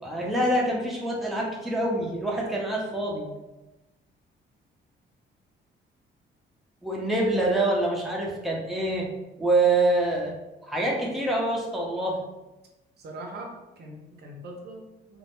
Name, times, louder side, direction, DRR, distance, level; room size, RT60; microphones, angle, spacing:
voice 1, 0.0-3.3 6.8-9.1 9.4-10.3 10.6-12.2, right 2 dB, ahead, -3 dB, 0.5 m, -25 dB
voice 2, 13.0-15.2, right 1 dB, 55° right, 1 dB, 0.5 m, -41 dB
2.2 x 2.0 x 2.9 m, 1.0 s
cardioid pair, 90°, 20 cm